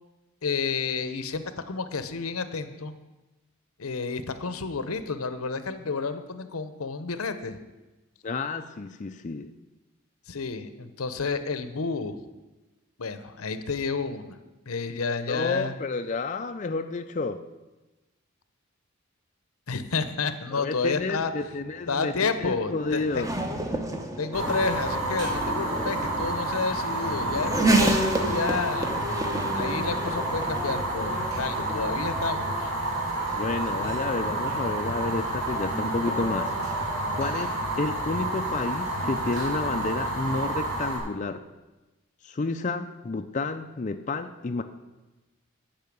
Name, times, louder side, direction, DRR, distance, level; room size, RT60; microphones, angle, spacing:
voice 1, 0.4-2.9 3.8-7.6 10.3-12.2 13.0-14.4 14.7-15.7 19.7-21.3 21.9-23.2 24.2-28.9 29.5-32.7, left 4 dB, 90° left, 11 dB, 0.8 m, -30 dB
voice 2, 8.2-9.5 15.3-17.4 20.5-23.3 33.3-36.5 37.1-41.4 42.2-44.6, left 3 dB, 35° left, 7 dB, 0.4 m, -30 dB
Race car auto racing / Accelerating revving vroom, 21.4-37.5, right 1 dB, 15° right, 0.8 m, -32 dB
Fire, 24.3-41.0, right 2 dB, 65° right, 4.3 m, -29 dB
10.5 x 5.6 x 8.5 m, 1.1 s
head